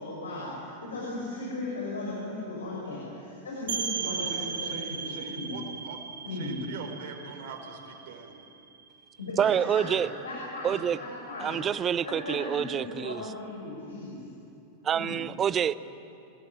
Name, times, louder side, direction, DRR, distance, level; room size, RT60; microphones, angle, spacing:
voice 1, 0.0-5.5 6.2-6.6 9.2-10.0 10.2-11.6 12.0-14.2 14.9-15.2, left 2 dB, 70° left, 6.8 m, -37 dB
sound 1, 3.7-9.2, right 6 dB, 65° right, 2.1 m, -36 dB
voice 2, 3.9-8.4, right 5 dB, 50° right, 4.4 m, -44 dB
voice 3, 9.4-10.1 10.6-11.0 11.4-13.2 14.8-15.7, right 9 dB, 25° right, 0.7 m, -27 dB
26.5 x 19.5 x 9.5 m
figure-of-eight pair, 90°, 0 cm